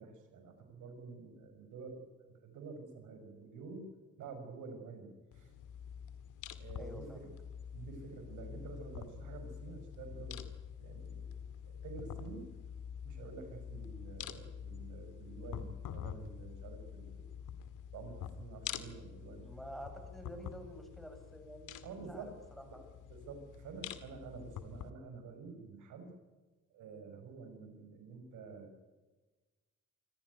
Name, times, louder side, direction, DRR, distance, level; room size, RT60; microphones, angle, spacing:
voice 1, 0.0-3.9 4.2-5.5 6.6-7.3 7.7-10.4 10.8-12.4 13.0-17.3 17.9-19.4 21.8-22.3 23.1-26.1 26.7-28.7, right 4 dB, 85° right, 6 dB, 5.8 m, -49 dB
sound 1, 5.3-24.9, left 8 dB, 85° left, 2.1 m, -47 dB
voice 2, 6.8-7.3 19.4-22.3 22.6-22.9, equal, ahead, 4 dB, 7.7 m, -49 dB
27.5 x 15.0 x 9.4 m, 1.2 s
cardioid pair, 90°, 30 cm